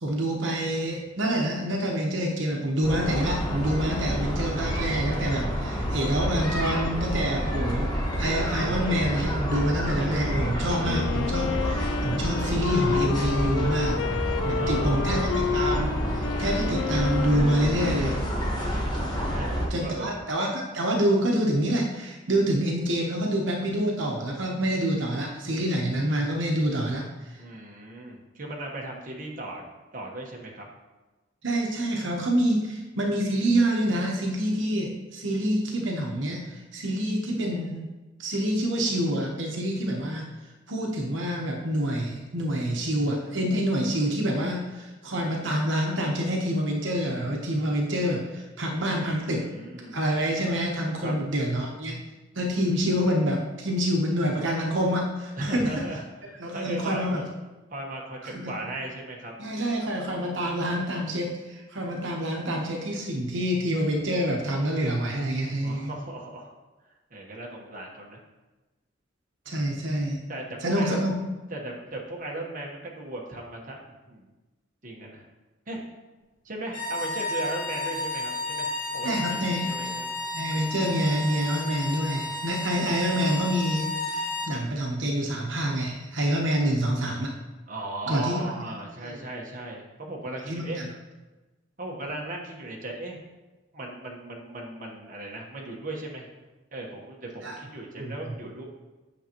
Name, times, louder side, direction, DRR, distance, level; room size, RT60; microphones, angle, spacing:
voice 1, 0.0-7.9 8.2-14.0 14.4-18.2 19.7-27.0 31.4-37.9 38.2-40.2 40.7-49.5 49.9-52.0 52.3-55.7 56.4-57.2 58.2-58.6 59.4-65.9 69.5-70.2 70.6-71.2 79.0-79.7 80.3-87.3 88.1-88.5 89.0-89.2 90.5-90.9 97.4-97.6 98.0-98.3, equal, 75° right, 0 dB, 1.1 m, -27 dB
sound 1, 2.8-19.7, equal, 20° left, 1.3 m, -29 dB
Wind instrument woodwind instrument, 10.8-18.5, left 6 dB, 65° left, 0.3 m, -30 dB
voice 2, 14.5-15.0 19.2-20.2 27.4-29.6 29.9-30.6 49.0-50.0 51.0-51.1 55.4-57.0 57.7-59.3 65.6-66.5 67.1-68.2 70.3-71.0 71.5-74.2 74.8-75.2 75.7-75.8 76.4-80.1 87.7-90.8 91.8-93.2 93.7-96.2 96.7-98.6, right 2 dB, 45° right, -1 dB, 1.2 m, -37 dB
sound 2, 76.7-84.6, left 2 dB, 45° left, 1.5 m, -32 dB
8.8 x 6.3 x 3.0 m, 1.2 s
head